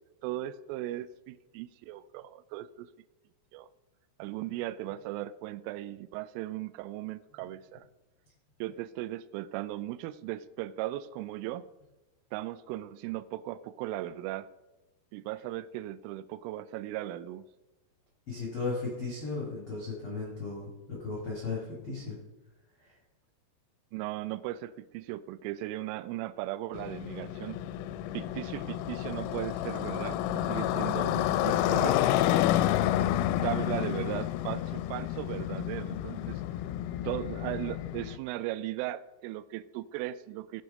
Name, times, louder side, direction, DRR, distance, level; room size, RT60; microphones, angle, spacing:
voice 1, 0.2-2.9 3.5-3.7 4.2-7.9 8.6-11.6 12.3-14.5 15.1-17.4 23.9-27.6 28.1-32.0 33.0-33.1 33.4-36.4 37.0-40.6, right 14 dB, 85° right, 14 dB, 2.9 m, -37 dB
voice 2, 18.3-22.2 22.8-22.9, left 4 dB, 45° left, -3 dB, 1.7 m, -36 dB
Motorcycle, 26.7-38.2, left 12 dB, 90° left, 3.3 m, -30 dB
17.0 x 6.3 x 5.3 m, 1.1 s
omnidirectional pair, 6.0 m